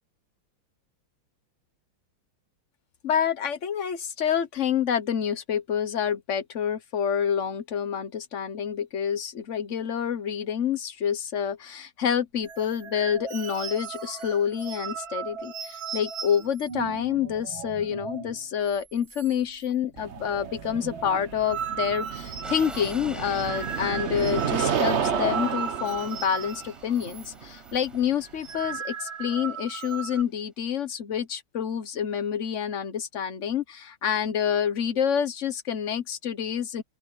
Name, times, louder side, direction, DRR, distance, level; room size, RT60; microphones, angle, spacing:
voice 1, 3.0-36.8, left 8 dB, 45° left, 1.1 m, -28 dB
sound 1, 12.4-18.4 18.7-18.8 19.1-19.7 19.9-27.3 27.5-27.8 28.2-30.2, right 7 dB, 75° right, 2.3 m, -37 dB
sound 2, 20.0-28.8, right 7 dB, 45° right, 0.9 m, -31 dB
sound 3, 22.4-29.5, equal, ahead, 5.6 m, -47 dB
open air
omnidirectional pair, 2.2 m